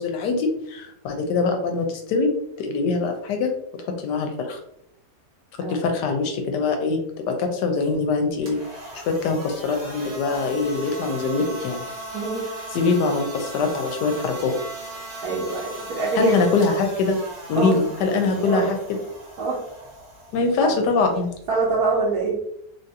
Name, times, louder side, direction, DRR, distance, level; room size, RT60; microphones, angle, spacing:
voice 1, 0.0-4.6 5.7-7.0 7.3-8.6 8.9-11.8 12.7-14.5 16.2-17.2 17.5-18.8 20.3-21.3, left 4 dB, 80° left, 4 dB, 1.2 m, -23 dB
sound 1, 8.4-22.4, right 1 dB, 45° right, 1.0 m, -38 dB
voice 2, 12.1-12.4 15.2-16.3 17.5-17.8 18.2-18.7 19.4-19.6 20.6-20.7 21.5-22.4, right 3 dB, 65° right, -5 dB, 1.2 m, -24 dB
3.4 x 2.5 x 2.7 m, 0.73 s
omnidirectional pair, 1.9 m